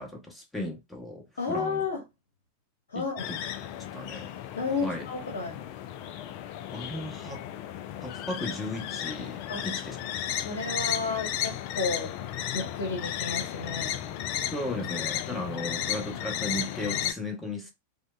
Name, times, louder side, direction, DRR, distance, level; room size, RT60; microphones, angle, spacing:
voice 1, 0.0-1.8 2.9-3.4 3.9-4.3 4.8-5.0 6.7-7.4 8.0-10.0 14.5-17.7, left 1 dB, 10° left, 1.0 m, -36 dB
voice 2, 1.4-2.0 2.9-3.3 4.6-5.6 9.5-9.7 10.3-12.1 12.5-13.9, left 4 dB, 65° left, 0.9 m, -32 dB
sound 1, 3.2-17.1, left 11 dB, 45° left, 0.3 m, -34 dB
4.8 x 2.1 x 2.3 m
figure-of-eight pair, 90°, 0 cm